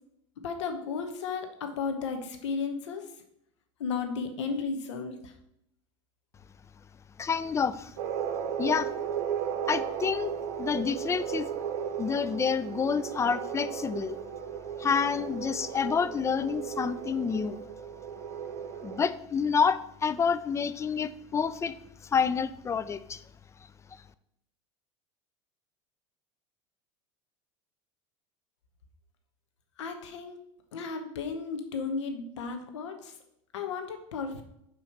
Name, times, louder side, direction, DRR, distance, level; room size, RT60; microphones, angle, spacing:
voice 1, 0.4-3.1 3.8-5.3 29.8-30.4 30.7-33.1 33.5-34.4, left 5 dB, 85° left, 6 dB, 0.9 m, -34 dB
voice 2, 7.2-7.9 8.6-8.9 9.7-10.3 10.6-11.5 12.0-14.2 14.8-17.7 18.8-21.8 22.0-23.2 23.9-24.0, left 6 dB, 20° left, 14 dB, 0.4 m, -28 dB
sound 1, 8.0-19.1, right 8 dB, 70° right, 0.8 m, -35 dB
6.3 x 3.1 x 5.7 m, 0.76 s
hypercardioid pair, 95°, 15 cm